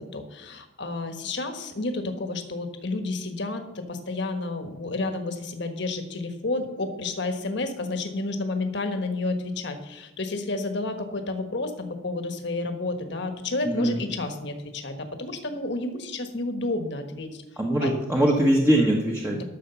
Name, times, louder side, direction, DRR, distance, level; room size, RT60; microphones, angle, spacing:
voice 1, 0.0-17.4 17.8-17.9 19.3-19.4, left 2 dB, 60° left, 7 dB, 1.3 m, -31 dB
voice 2, 13.6-14.0 17.6-19.4, right 1 dB, 10° right, -1 dB, 1.2 m, -22 dB
12.0 x 6.5 x 6.9 m, 1.0 s
head